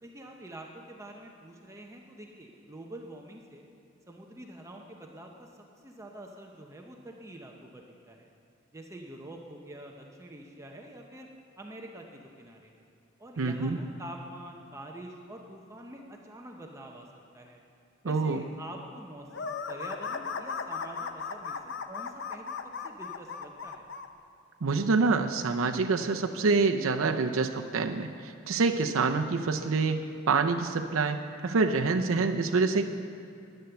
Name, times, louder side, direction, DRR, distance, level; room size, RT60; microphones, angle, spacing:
voice 1, 0.0-3.7 4.1-5.5 5.8-8.3 8.7-11.3 11.6-12.8 13.2-17.1 17.3-17.6 18.0-22.5 22.8-23.8, right 1 dB, 15° right, 1 dB, 0.8 m, -46 dB
voice 2, 13.4-13.8 18.0-18.4 24.6-32.9, right 4 dB, 90° right, 4 dB, 0.6 m, -26 dB
sound 1, 19.3-24.1, left 5 dB, 60° left, 0.7 m, -36 dB
11.0 x 10.0 x 6.9 m, 2.6 s
head